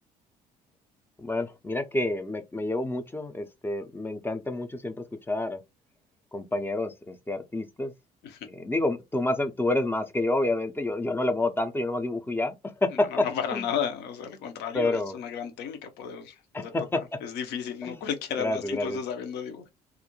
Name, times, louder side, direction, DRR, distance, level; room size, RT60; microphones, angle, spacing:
voice 1, 1.2-4.9 5.3-5.6 6.3-7.9 8.5-12.5 12.8-13.6 14.7-15.2 16.5-17.0 17.8-18.0 18.4-19.0, left 2 dB, 10° left, 0.5 m, -28 dB
voice 2, 13.0-16.7 17.2-19.7, left 8 dB, 60° left, 0.7 m, -33 dB
2.4 x 2.1 x 2.9 m
hypercardioid pair, 55°, 19 cm